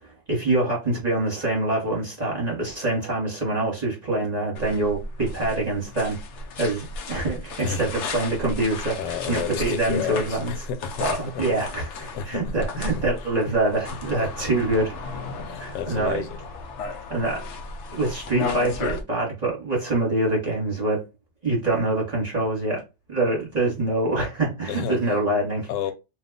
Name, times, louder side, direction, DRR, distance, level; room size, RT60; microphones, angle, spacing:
voice 1, 0.0-6.2 6.6-10.5 11.0-14.9 15.6-16.2 17.1-17.4 17.9-21.0 21.4-22.8 23.1-25.7, right 2 dB, 25° right, 1.1 m, -25 dB
sound 1, 4.5-19.0, left 3 dB, 65° left, 0.7 m, -34 dB
voice 2, 7.6-7.9 9.0-12.8 13.2-13.5 14.2-14.4 15.4-16.4 24.7-25.0 25.7-25.9, left 7 dB, 85° left, 1.2 m, -32 dB
2.8 x 2.3 x 3.7 m
omnidirectional pair, 1.8 m